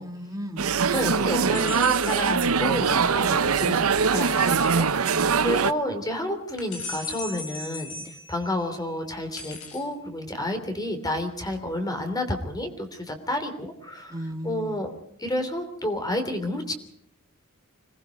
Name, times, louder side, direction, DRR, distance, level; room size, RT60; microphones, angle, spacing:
voice 1, 0.0-0.7 5.1-5.7 14.1-14.8, equal, 15° right, 1 dB, 2.2 m, -36 dB
sound 1, 0.6-5.7, right 6 dB, 80° right, 0.8 m, -22 dB
voice 2, 0.9-8.0 8.3-14.2 14.4-14.9 15.2-16.7, left 1 dB, 20° left, 7 dB, 3.2 m, -30 dB
sound 2, 1.5-3.1 6.7-9.2, left 4 dB, 55° left, 7.3 m, -39 dB
sound 3, 4.1-4.8 6.6-7.2 9.4-9.9, left 5 dB, 85° left, 6.0 m, -43 dB
26.0 x 19.5 x 5.2 m, 0.74 s
head